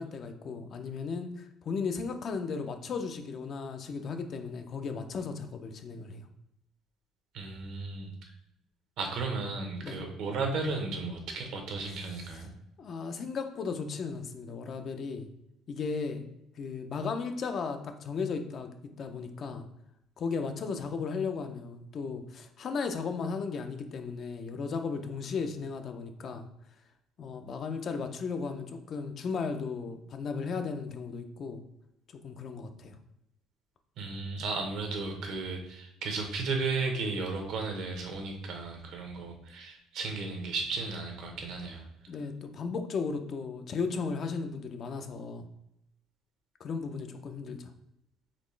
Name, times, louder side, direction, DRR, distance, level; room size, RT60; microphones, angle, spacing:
voice 1, 0.0-6.2 9.8-10.0 12.8-15.3 15.7-16.2 16.6-19.6 20.2-26.5 27.2-31.6 32.2-33.0 42.1-45.4 46.6-47.7, left 5 dB, 40° left, 6 dB, 0.4 m, -35 dB
voice 2, 7.3-8.1 9.0-12.5 34.0-41.8, right 3 dB, 60° right, 3 dB, 0.8 m, -34 dB
4.1 x 3.1 x 3.2 m, 0.83 s
cardioid pair, 145°, 0 cm